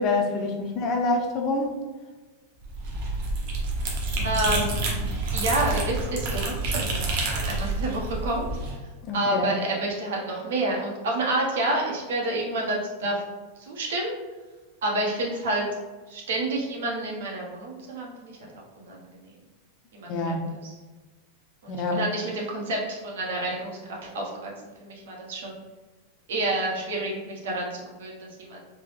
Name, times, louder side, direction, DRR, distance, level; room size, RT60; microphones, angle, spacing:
voice 1, 0.0-1.7 9.1-9.4 20.1-20.5 21.7-22.0, left 2 dB, 25° left, 3 dB, 0.4 m, -26 dB
sound 1, 2.6-8.7, right 2 dB, 45° right, 0.7 m, -28 dB
voice 2, 4.2-5.1 5.3-8.5 9.1-13.2 13.6-14.2 14.8-15.7 16.1-18.4 18.8-19.0 19.9-20.3 20.6-20.7 21.6-23.8 24.1-24.5 24.8-25.6 26.3-28.6, right 2 dB, 80° right, -2 dB, 0.9 m, -29 dB
3.4 x 2.0 x 3.2 m, 1.2 s
supercardioid pair, 175°, 0 cm